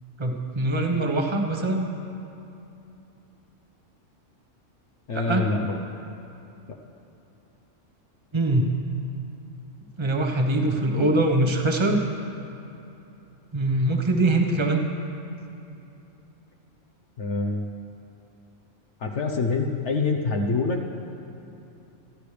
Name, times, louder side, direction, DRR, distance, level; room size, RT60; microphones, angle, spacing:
voice 1, 0.2-1.9 5.3-5.5 8.3-8.7 10.0-12.0 13.5-14.8, right 2 dB, 25° right, 2 dB, 1.1 m, -23 dB
voice 2, 5.1-5.8 17.2-17.9 19.0-20.8, left 3 dB, 65° left, 3 dB, 1.1 m, -26 dB
27.5 x 10.0 x 3.4 m, 2.8 s
omnidirectional pair, 1.3 m